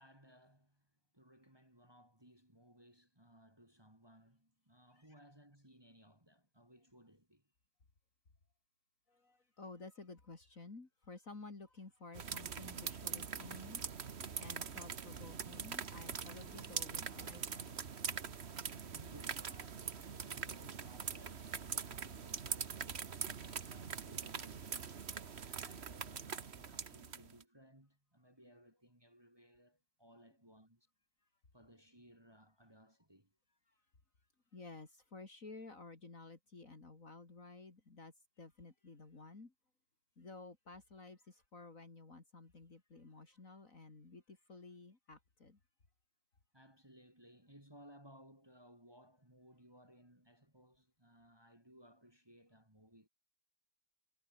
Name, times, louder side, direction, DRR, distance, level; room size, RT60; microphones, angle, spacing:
voice 1, 0.0-7.5 18.8-23.1 23.6-30.9 31.5-33.4 46.5-53.1, equal, 15° right, 4.1 m, -62 dB
voice 2, 9.1-13.8 14.4-17.8 18.9-19.0 34.5-39.5 40.2-45.6, left 3 dB, 55° left, 3.6 m, -53 dB
sound 1, 12.1-27.4, right 6 dB, 45° right, 1.4 m, -43 dB
omnidirectional pair, 1.7 m